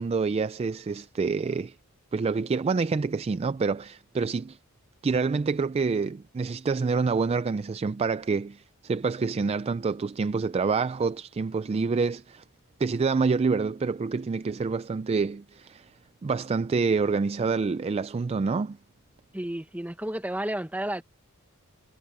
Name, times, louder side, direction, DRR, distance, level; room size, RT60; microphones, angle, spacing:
voice 1, 0.0-1.7 2.1-4.6 5.0-12.4 12.8-15.9 16.2-18.8, right 4 dB, 30° right, 0.3 m, -27 dB
voice 2, 19.3-21.0, right 1 dB, 5° right, 1.2 m, -31 dB
head